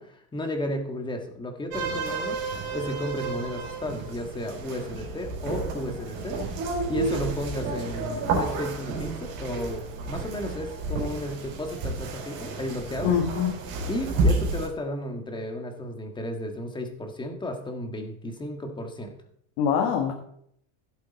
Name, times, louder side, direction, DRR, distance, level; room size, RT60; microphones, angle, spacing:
voice 1, 0.0-6.4 6.9-13.1 13.9-19.2, left 1 dB, 10° left, 4 dB, 1.6 m, -33 dB
sound 1, 1.7-14.7, right 3 dB, 55° right, 4.7 m, -31 dB
voice 2, 13.0-13.6 19.6-20.1, left 7 dB, 55° left, 2 dB, 1.7 m, -24 dB
15.5 x 8.0 x 4.1 m, 0.68 s
supercardioid pair, 155°, 44 cm